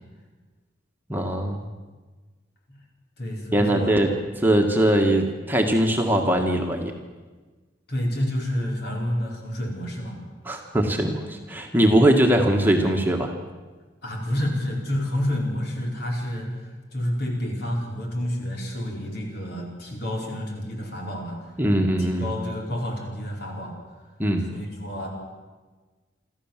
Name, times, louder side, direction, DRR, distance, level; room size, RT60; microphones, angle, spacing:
voice 1, 1.1-1.7 3.5-4.1 4.4-6.9 10.4-13.3 21.6-22.3 24.2-24.5, right 1 dB, 10° right, 2 dB, 1.6 m, -21 dB
voice 2, 3.2-4.1 7.9-10.2 14.0-21.4 22.0-23.7 24.5-25.1, left 1 dB, 55° left, 0 dB, 4.7 m, -29 dB
26.0 x 14.0 x 7.4 m, 1.3 s
head